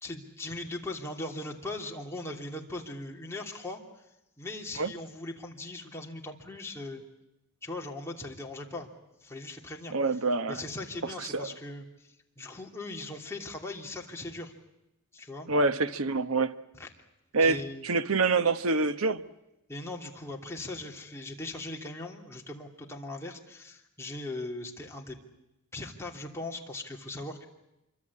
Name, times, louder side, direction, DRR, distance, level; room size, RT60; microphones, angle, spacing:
voice 1, 0.0-3.8 4.4-7.0 7.6-8.9 9.2-10.2 10.5-14.5 15.1-15.5 16.8-16.9 17.4-17.9 19.7-25.2 25.7-27.5, left 2 dB, 10° left, 3.0 m, -39 dB
voice 2, 9.9-10.6 11.3-11.5 15.5-16.5 17.3-19.2, right 3 dB, 65° right, 1.1 m, -26 dB
26.5 x 24.5 x 8.6 m
head